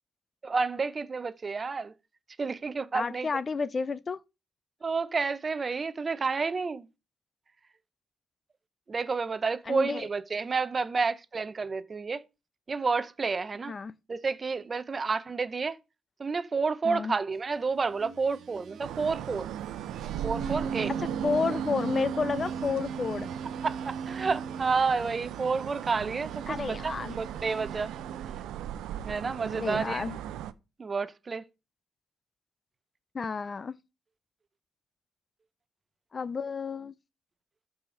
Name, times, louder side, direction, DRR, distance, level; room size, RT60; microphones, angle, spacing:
voice 1, 0.4-1.9 2.4-3.3 4.8-6.9 8.9-12.2 12.7-13.7 14.1-15.8 16.2-19.5 20.2-20.9 23.6-27.9 29.0-30.0 30.8-31.4, right 4 dB, 35° right, 0.7 m, -30 dB
voice 2, 2.9-4.2 9.7-10.1 13.7-13.9 16.8-17.1 21.0-23.3 26.5-27.2 29.6-30.2 33.1-33.8 36.1-37.0, left 5 dB, 35° left, 0.5 m, -31 dB
sound 1, 17.8-28.7, right 5 dB, 65° right, 1.3 m, -39 dB
sound 2, 18.8-30.5, right 11 dB, 90° right, 0.5 m, -38 dB
13.0 x 4.9 x 3.9 m
cardioid pair, 90°, 0 cm